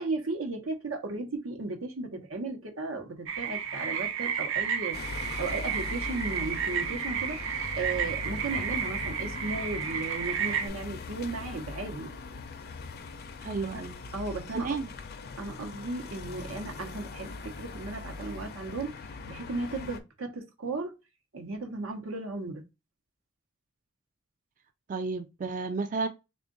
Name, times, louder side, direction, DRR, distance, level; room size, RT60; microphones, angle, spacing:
voice 1, 0.0-12.1 13.4-13.5 13.7-13.8 14.1-14.8 15.4-19.0 19.3-20.9 21.3-22.6, right 3 dB, 90° right, 1.0 m, -35 dB
sound 1, 3.3-10.7, right 7 dB, 65° right, 0.7 m, -32 dB
sound 2, 4.9-20.0, left 3 dB, 50° left, 0.5 m, -41 dB
voice 2, 13.4-14.0 14.5-14.9 24.9-26.1, right 4 dB, 40° right, 0.3 m, -32 dB
3.6 x 2.4 x 3.7 m
head